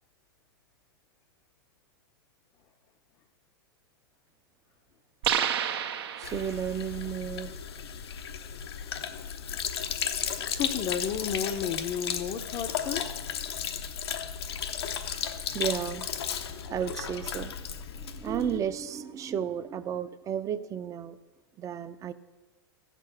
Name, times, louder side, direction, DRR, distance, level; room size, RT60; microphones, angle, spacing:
sound 1, 5.2-6.8, right 9 dB, 75° right, 0.9 m, -29 dB
Sink (filling or washing), 6.2-18.6, left 8 dB, 85° left, 0.9 m, -35 dB
voice 1, 6.2-7.5 15.5-16.1 16.7-21.2 21.6-22.1, right 8 dB, 25° right, 12 dB, 0.6 m, -33 dB
voice 2, 10.5-13.0, left 8 dB, 40° left, 4 dB, 0.6 m, -32 dB
14.5 x 6.7 x 6.1 m, 1.3 s
hypercardioid pair, 120°, 13 cm